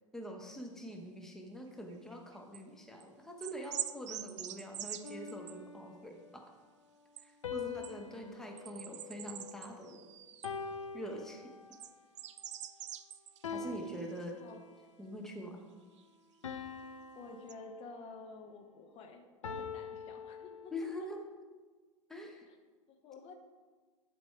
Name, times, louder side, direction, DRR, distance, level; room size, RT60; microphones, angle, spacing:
voice 1, 0.1-6.4 7.2-10.1 10.9-11.5 13.5-14.4 15.0-15.6 20.7-21.2 22.1-22.5, equal, 5° left, 2 dB, 1.0 m, -44 dB
sound 1, 1.9-2.6 3.0-3.1 3.4-5.6 7.2-7.3 7.6-7.9 8.6-10.5 11.7-13.5 13.8-14.3 16.0-16.1 17.5-17.6, right 11 dB, 60° right, 0.5 m, -44 dB
sound 2, 5.0-6.3 7.4-9.9 10.4-11.9 13.4-14.9 16.4-18.3 19.4-21.1, left 5 dB, 75° left, 0.6 m, -45 dB
voice 2, 7.5-8.7 13.5-14.0 14.4-14.7 17.1-21.1 22.5-22.6 22.9-23.3, left 4 dB, 35° left, 5 dB, 0.9 m, -51 dB
10.5 x 4.5 x 4.7 m, 1.4 s
figure-of-eight pair, 85°, 17 cm